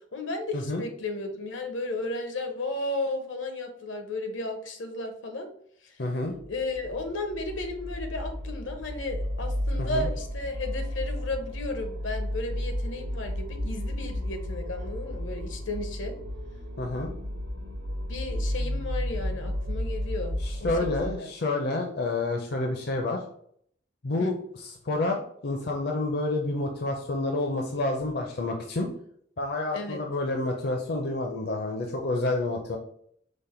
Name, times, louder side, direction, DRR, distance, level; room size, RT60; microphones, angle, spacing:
voice 1, 0.1-5.5 5.8-6.0 6.5-16.1 18.1-20.7 21.0-21.3 24.2-24.4 29.7-30.0, left 2 dB, 80° left, 5 dB, 0.8 m, -34 dB
voice 2, 6.0-6.3 9.8-10.1 16.8-17.1 20.4-23.2 24.0-28.9 29.4-32.8, left 2 dB, 55° left, 2 dB, 0.5 m, -29 dB
sound 1, 6.3-21.2, equal, 70° right, 0.6 m, -33 dB
5.1 x 2.1 x 4.3 m, 0.64 s
head